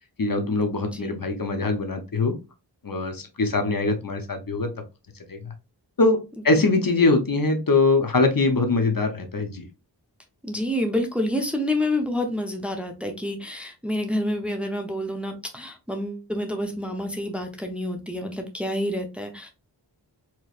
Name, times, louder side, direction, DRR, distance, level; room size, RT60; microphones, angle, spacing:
voice 1, 0.2-2.4 2.8-4.7 5.3-5.5 6.0-9.7, left 3 dB, 50° left, 6 dB, 0.8 m, -22 dB
voice 2, 0.9-1.2 6.6-6.8 10.4-19.5, left 1 dB, 5° right, 4 dB, 0.8 m, -28 dB
4.4 x 3.1 x 2.4 m, 0.28 s
wide cardioid pair, 70°, 44 cm